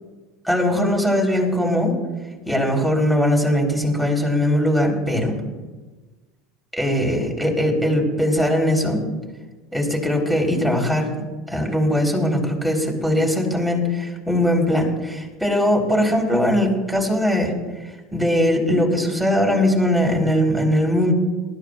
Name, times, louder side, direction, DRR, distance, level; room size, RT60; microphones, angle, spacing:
voice 1, 0.4-1.9 2.5-5.4 6.8-9.0 9.7-11.2 11.5-17.5 18.1-21.1, left 1 dB, ahead, 0 dB, 4.2 m, -20 dB
20.0 x 13.5 x 2.5 m, 1.3 s
hypercardioid pair, 85°, 0 cm